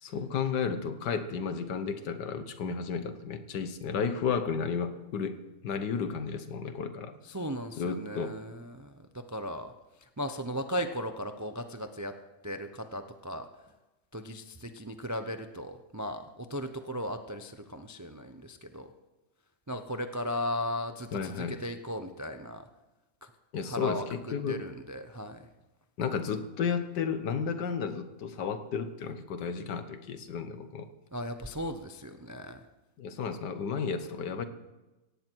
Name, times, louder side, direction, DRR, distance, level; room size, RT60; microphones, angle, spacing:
voice 1, 0.0-5.4 5.6-7.1 7.8-8.4 21.1-21.6 23.5-24.6 26.0-30.9 33.0-34.4, left 6 dB, 75° left, 10 dB, 1.7 m, -33 dB
voice 2, 7.3-9.7 10.2-12.1 12.4-13.5 14.1-18.9 19.7-22.6 23.7-24.0 24.5-25.4 31.1-32.6, equal, 30° right, 8 dB, 0.3 m, -36 dB
17.5 x 15.5 x 4.6 m, 1.1 s
omnidirectional pair, 1.8 m